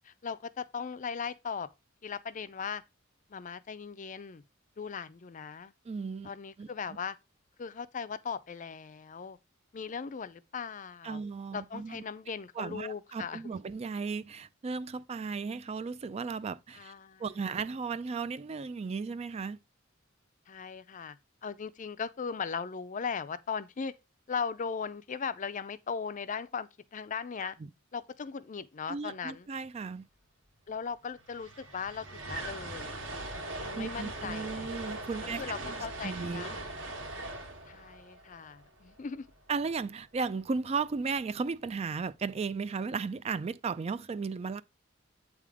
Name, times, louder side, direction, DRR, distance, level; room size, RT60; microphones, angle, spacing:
voice 1, 0.0-1.7 2.0-2.8 3.3-4.4 4.8-5.7 6.2-7.2 7.6-9.4 9.7-11.2 11.5-13.6 16.7-17.2 20.5-21.2 21.4-23.9 24.3-27.6 27.9-29.5 30.7-33.0 33.6-34.7 35.4-36.8 37.7-39.3, left 6 dB, 40° left, 0.4 m, -38 dB
voice 2, 5.9-6.3 6.6-6.7 11.0-12.0 12.6-16.9 17.2-19.6 27.4-27.7 28.9-30.0 33.7-35.4 36.0-36.5 39.5-44.6, right 5 dB, 30° right, 0.3 m, -35 dB
sound 1, 30.8-30.9 31.0-39.3, right 2 dB, 70° right, 1.7 m, -41 dB
8.4 x 3.6 x 4.8 m
head